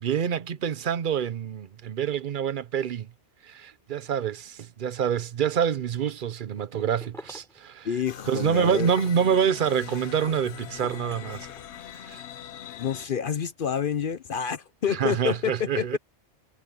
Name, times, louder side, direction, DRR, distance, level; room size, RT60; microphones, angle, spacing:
voice 1, 0.0-3.1 3.4-7.9 8.3-11.5 12.0-12.2 14.9-16.0, right 8 dB, 50° right, 0.8 m, -26 dB
sound 1, 6.6-7.6 8.3-9.8 10.3-11.6, equal, ahead, 3.7 m, -47 dB
voice 2, 7.8-8.9 12.8-16.0, left 8 dB, 55° left, 0.8 m, -28 dB
sound 2, 8.1-13.1, left 10 dB, 80° left, 1.1 m, -41 dB
omnidirectional pair, 1.1 m